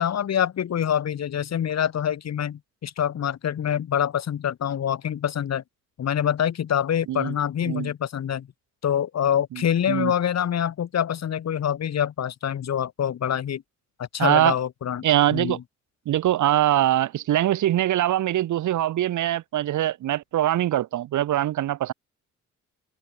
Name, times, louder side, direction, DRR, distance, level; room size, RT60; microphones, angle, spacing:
voice 1, 0.0-5.6 6.0-8.5 8.8-13.6 14.0-15.1 15.3-15.6, left 9 dB, 60° left, 3.9 m, -25 dB
voice 2, 9.5-10.1 14.2-14.5 15.0-15.6 16.1-21.9, right 13 dB, 75° right, 2.7 m, -23 dB
cardioid pair, 90°, 30 cm